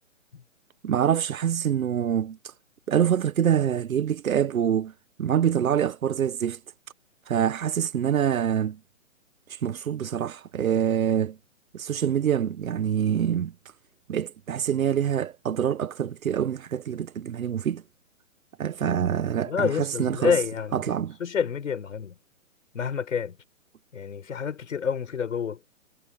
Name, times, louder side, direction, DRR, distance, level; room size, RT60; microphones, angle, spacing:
voice 1, 0.8-2.4 2.9-4.9 5.2-6.6 7.3-8.8 9.5-11.4 11.7-13.5 14.1-17.8 18.6-20.4 20.7-21.2, right 9 dB, 85° right, 1.0 m, -25 dB
voice 2, 18.8-22.1 22.7-23.4 23.9-25.6, left 7 dB, 70° left, 4.7 m, -29 dB
hypercardioid pair, 170°, 40 cm